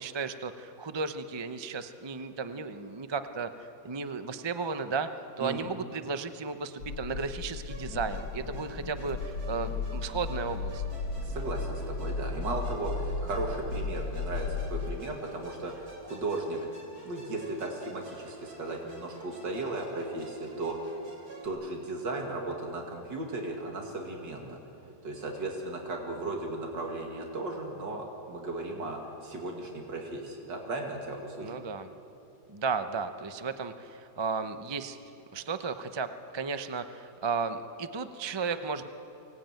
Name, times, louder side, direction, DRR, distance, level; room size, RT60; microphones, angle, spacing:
voice 1, 0.0-3.5 3.8-5.1 5.4-10.8 31.4-31.9 32.5-35.0 35.3-38.9, right 4 dB, 30° right, 9 dB, 0.5 m, -34 dB
voice 2, 5.4-5.7 11.2-16.7 17.0-20.9 21.4-24.6 25.0-31.6, right 2 dB, 90° right, 1 dB, 2.8 m, -36 dB
sound 1, 6.8-15.0, left 4 dB, 75° left, 1.7 m, -35 dB
Musical instrument, 7.7-21.5, right 2 dB, 65° right, 3.5 m, -48 dB
24.0 x 19.0 x 9.1 m, 3.0 s
omnidirectional pair, 1.9 m